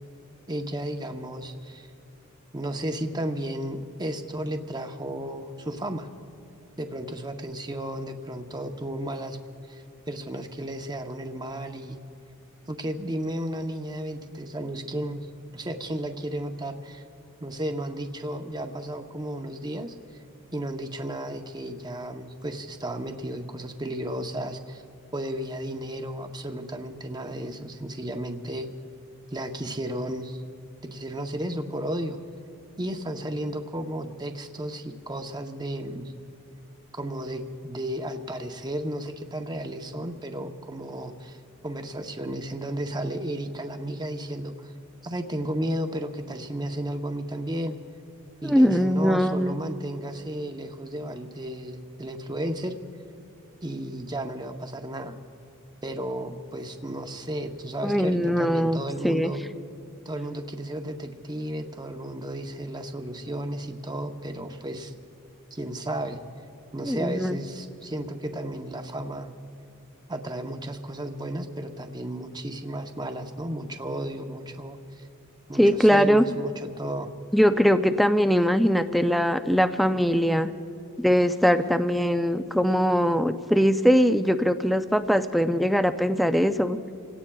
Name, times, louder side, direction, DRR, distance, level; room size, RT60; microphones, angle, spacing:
voice 1, 0.5-1.9 2.5-6.1 6.8-9.4 9.7-12.0 12.7-15.3 15.5-17.0 17.4-20.0 20.5-24.8 25.1-28.7 29.3-30.4 30.8-32.2 32.8-36.1 37.0-44.7 45.0-47.8 48.4-52.8 53.6-55.2 55.8-59.4 60.0-64.9 65.5-66.2 66.7-69.3 70.1-75.1 75.5-77.1, right 1 dB, 20° right, 5 dB, 0.8 m, -33 dB
voice 2, 48.4-49.5 57.8-59.3 66.8-67.4 75.6-76.2 77.3-80.5 81.0-86.8, equal, ahead, 9 dB, 0.4 m, -21 dB
28.0 x 17.0 x 2.3 m, 2.5 s
head